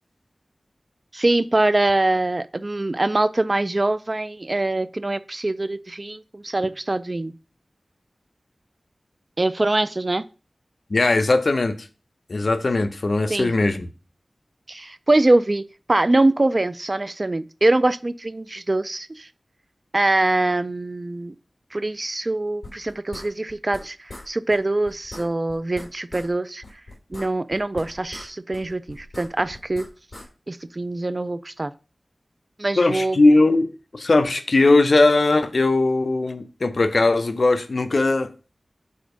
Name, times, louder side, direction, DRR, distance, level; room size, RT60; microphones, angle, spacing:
voice 1, 1.1-7.3 9.4-10.2 13.3-13.5 14.7-15.6 15.9-19.3 19.9-21.3 21.7-26.6 27.1-29.8 30.5-31.7 32.6-33.2, right 2 dB, 40° right, 15 dB, 0.4 m, -23 dB
voice 2, 10.9-11.8 12.3-13.9 32.8-33.7 33.9-38.3, left 2 dB, 65° left, 9 dB, 0.7 m, -19 dB
sound 1, 22.6-23.8 24.1-24.3 24.5-24.6 24.8-26.3 26.6-28.3 28.5-30.3, left 2 dB, 45° left, 3.1 m, -40 dB
5.1 x 4.3 x 5.1 m, 0.35 s
wide cardioid pair, 50°, 0 cm